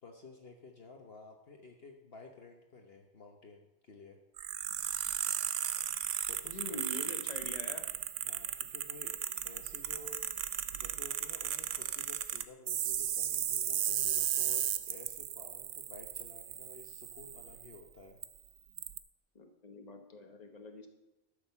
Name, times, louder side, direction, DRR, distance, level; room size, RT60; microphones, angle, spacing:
voice 1, 0.0-4.2 4.9-5.0 5.2-5.4 6.3-7.1 8.2-9.2 9.4-10.5 10.7-18.2, left 3 dB, 50° left, 2 dB, 1.2 m, -53 dB
sound 1, 4.4-17.8 18.2-18.3 18.8-19.0, right 10 dB, 75° right, 1.0 m, -35 dB
voice 2, 6.4-7.9 19.3-20.9, left 2 dB, 35° left, 5 dB, 1.3 m, -45 dB
13.0 x 6.6 x 6.8 m, 1.0 s
omnidirectional pair, 1.3 m